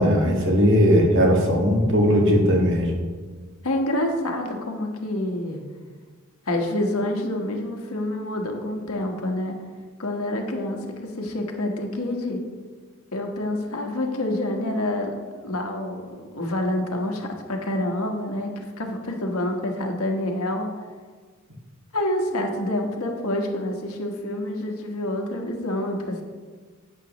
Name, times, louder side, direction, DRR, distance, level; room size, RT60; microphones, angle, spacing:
voice 1, 0.0-2.9, equal, 60° right, 1 dB, 1.7 m, -18 dB
voice 2, 3.6-5.6 6.4-9.5 10.0-12.4 13.1-20.7 21.9-26.2, left 1 dB, 80° left, 2 dB, 1.3 m, -27 dB
11.0 x 8.3 x 3.0 m, 1.5 s
head